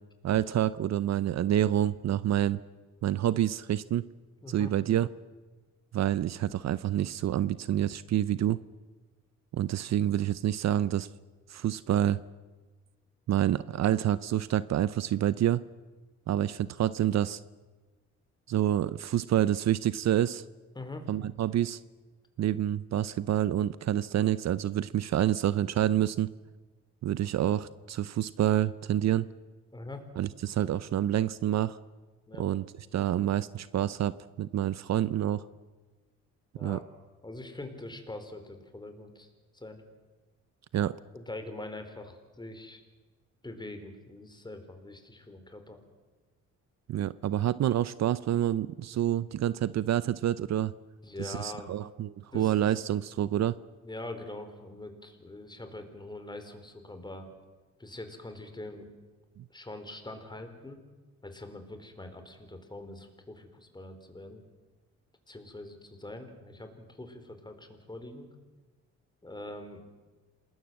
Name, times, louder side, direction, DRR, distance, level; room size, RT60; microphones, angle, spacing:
voice 1, 0.2-2.6 3.0-4.1 4.5-5.1 5.9-8.6 9.5-11.1 11.5-12.2 13.3-15.6 16.3-17.4 18.5-20.4 21.1-21.8 22.4-26.3 27.0-29.3 30.2-31.8 32.4-32.7 32.9-35.4 36.6-36.8 40.7-40.9 46.9-50.7 51.2-53.6 59.4-59.5, right 12 dB, 60° right, 16 dB, 0.7 m, -27 dB
voice 2, 4.4-4.7 20.7-21.1 29.7-30.1 32.3-32.4 36.5-36.8 37.2-39.3 39.5-39.8 41.1-42.8 43.4-45.8 51.0-51.7 52.3-52.7 53.8-57.3 57.8-58.9 59.5-60.8 61.2-64.4 65.3-68.3 69.2-69.8, left 2 dB, 15° left, 7 dB, 4.3 m, -43 dB
27.5 x 20.0 x 7.6 m, 1.3 s
cardioid pair, 90°, 30 cm